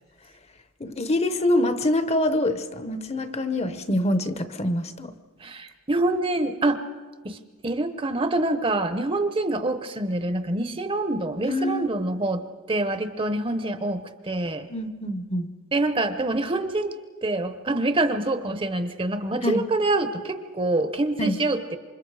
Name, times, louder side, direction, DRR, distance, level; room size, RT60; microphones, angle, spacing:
voice 1, 0.8-5.1 11.5-11.9 14.7-15.5 19.4-19.7 21.2-21.4, left 1 dB, 30° left, 0.9 m, -25 dB
voice 2, 5.4-6.8 7.2-7.4 7.6-12.4 12.7-14.7 15.7-17.0 17.2-21.8, right 2 dB, 25° right, 0.9 m, -26 dB
28.0 x 25.5 x 4.9 m
head